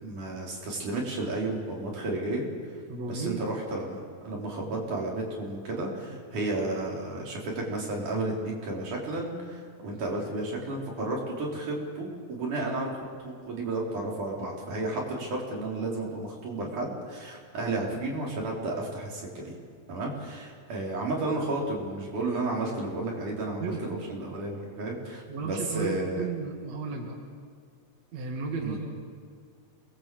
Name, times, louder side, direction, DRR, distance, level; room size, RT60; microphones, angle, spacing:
voice 1, 0.0-19.6 19.9-26.2 28.6-28.8, right 2 dB, 85° right, -2 dB, 5.6 m, -32 dB
voice 2, 2.9-3.6 4.3-4.4 6.1-6.2 23.6-24.0 25.3-27.2 28.1-29.0, right 4 dB, 60° right, 1 dB, 3.2 m, -34 dB
28.5 x 21.0 x 7.8 m, 2.1 s
omnidirectional pair, 3.5 m